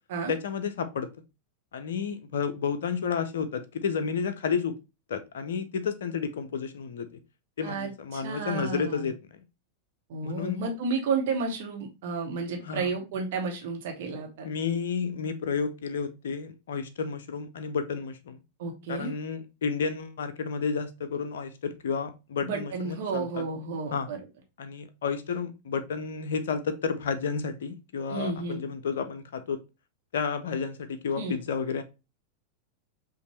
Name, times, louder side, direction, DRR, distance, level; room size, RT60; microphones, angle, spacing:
voice 1, 0.3-1.1 1.7-4.8 5.1-7.2 7.6-9.4 10.2-10.7 12.6-12.9 14.4-18.4 18.9-23.4 23.9-24.1 24.6-29.6 30.1-31.8, left 6 dB, 60° left, 9 dB, 0.5 m, -31 dB
voice 2, 7.6-9.1 10.1-14.4 18.6-19.1 22.4-24.2 28.1-28.6 31.2-31.4, right 4 dB, 55° right, 1 dB, 1.2 m, -32 dB
5.2 x 2.5 x 3.0 m, 0.27 s
figure-of-eight pair, 90°, 0 cm